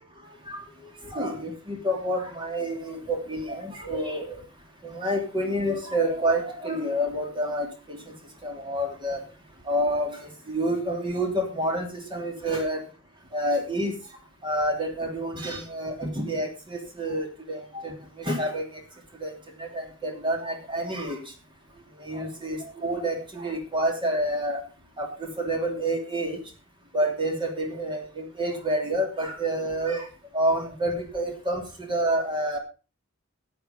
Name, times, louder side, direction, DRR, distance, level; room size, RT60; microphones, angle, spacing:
voice 1, 0.5-4.4 4.8-8.1 8.4-9.2 9.6-12.8 13.3-14.0 14.4-18.8 19.2-19.3 19.6-21.3 22.0-24.6 25.0-26.4 26.9-30.1 30.3-32.6, right 1 dB, 25° right, 3.1 m, -28 dB
12.5 x 8.3 x 5.3 m
head